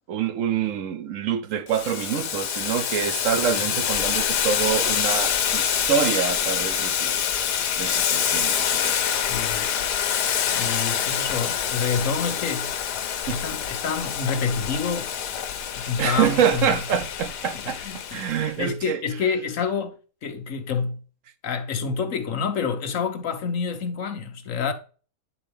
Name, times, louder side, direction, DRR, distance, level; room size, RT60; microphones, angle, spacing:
voice 1, 0.1-9.2 13.3-13.4 16.0-19.0, right 8 dB, 60° right, 0.9 m, -26 dB
Boiling, 1.7-18.5, left 8 dB, 80° left, 1.4 m, -26 dB
voice 2, 9.3-9.8 10.5-12.7 13.3-15.1 15.7-16.8 17.8-20.0 20.2-21.0 21.4-24.7, left 5 dB, 55° left, 1.3 m, -28 dB
9.5 x 4.0 x 3.4 m
omnidirectional pair, 1.7 m